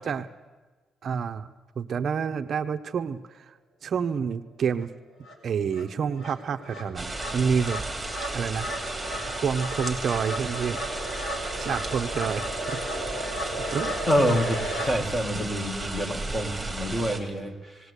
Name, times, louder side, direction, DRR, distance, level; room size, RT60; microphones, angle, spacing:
voice 1, 1.0-1.5 1.8-4.9 5.4-7.8 8.3-8.7 9.4-10.8 11.6-12.8 13.7-14.0 15.7-16.0, right 6 dB, 50° right, 8 dB, 0.7 m, -28 dB
sound 1, 4.8-4.9 5.2-14.9, equal, 55° left, 4.1 m, -35 dB
sound 2, 7.0-17.2, right 2 dB, 10° right, 3.0 m, -34 dB
voice 2, 14.1-14.6 14.8-17.8, equal, 15° left, 4 dB, 2.0 m, -26 dB
19.0 x 18.5 x 8.2 m, 1.3 s
cardioid pair, 155°, 0 cm